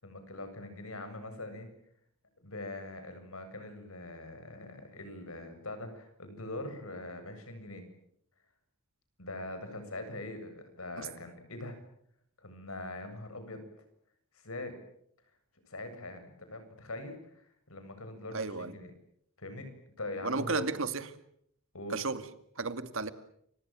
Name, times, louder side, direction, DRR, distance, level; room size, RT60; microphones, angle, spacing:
voice 1, 0.0-1.7 2.4-7.8 9.2-11.8 12.4-13.6 14.3-14.8 15.6-18.9 19.4-19.7 20.0-20.7 21.7-22.0, left 2 dB, 75° left, 9 dB, 7.7 m, -42 dB
voice 2, 18.3-18.7 20.2-21.1 21.9-22.2 22.6-23.1, right 3 dB, 65° right, 11 dB, 2.3 m, -33 dB
29.5 x 26.0 x 7.6 m, 0.70 s
head